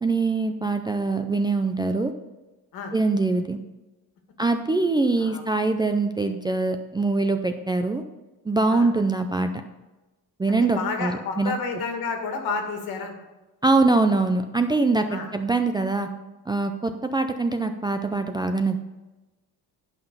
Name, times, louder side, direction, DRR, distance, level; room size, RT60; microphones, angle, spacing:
voice 1, 0.0-2.1 2.9-3.6 4.4-8.0 8.5-9.5 10.4-11.5 13.6-16.1 16.5-18.8, right 3 dB, 15° right, 6 dB, 0.3 m, -23 dB
voice 2, 10.5-13.1 15.1-15.3, left 4 dB, 80° left, 3 dB, 2.1 m, -30 dB
11.0 x 5.8 x 5.4 m, 1.1 s
cardioid pair, 160°, 36 cm